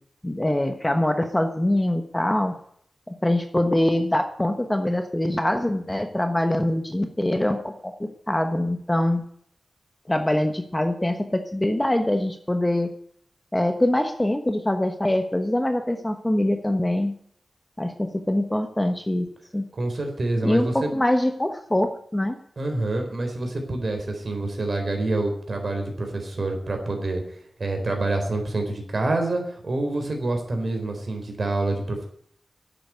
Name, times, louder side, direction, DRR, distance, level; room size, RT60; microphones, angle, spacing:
voice 1, 0.2-2.5 3.2-9.2 10.1-12.9 13.5-17.1 17.8-19.3 19.5-19.6 20.4-22.4, left 1 dB, 15° left, 6 dB, 1.2 m, -24 dB
voice 2, 19.7-20.9 22.6-27.2 27.6-32.1, right 2 dB, 50° right, 4 dB, 4.0 m, -27 dB
11.5 x 8.6 x 9.5 m, 0.66 s
wide cardioid pair, 130°, 0 cm